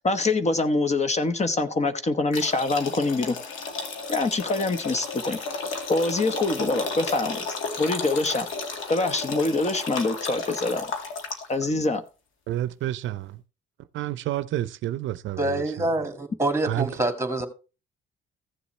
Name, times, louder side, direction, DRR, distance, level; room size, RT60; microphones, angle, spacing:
voice 1, 0.0-3.4 4.1-5.4 5.9-7.4 7.8-8.5 8.9-10.9 11.5-12.0, left 3 dB, 35° left, 1.1 m, -25 dB
sound 1, 2.3-11.6, left 4 dB, 85° left, 1.9 m, -33 dB
voice 2, 12.5-13.4 13.9-15.9 16.7-16.9, right 13 dB, 75° right, 0.5 m, -29 dB
voice 3, 15.4-17.5, right 2 dB, 15° right, 2.0 m, -26 dB
15.0 x 7.0 x 3.2 m
cardioid pair, 90°, 20 cm